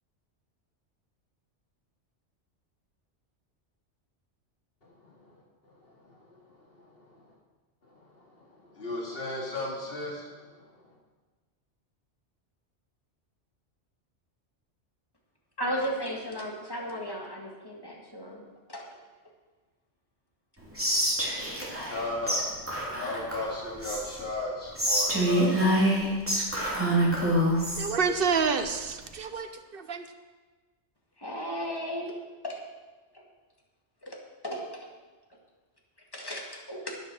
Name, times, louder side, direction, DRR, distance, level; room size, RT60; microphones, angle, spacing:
voice 1, 5.0-5.3 5.6-7.3 7.9-10.4 10.7-10.9 21.0-25.6, left 2 dB, 55° left, -3 dB, 2.7 m, -37 dB
voice 2, 15.6-18.4 18.7-18.9 31.2-32.2 32.4-32.6 33.1-33.3 34.0-34.9 36.1-37.0, equal, 20° left, 0 dB, 2.0 m, -35 dB
Whispering, 20.8-22.0 22.3-22.4 22.7-24.2 24.8-27.9, equal, 10° right, 3.0 m, -26 dB
voice 3, 27.8-30.0, right 5 dB, 55° right, 8 dB, 1.1 m, -28 dB
11.5 x 9.7 x 6.2 m, 1.3 s
omnidirectional pair, 1.2 m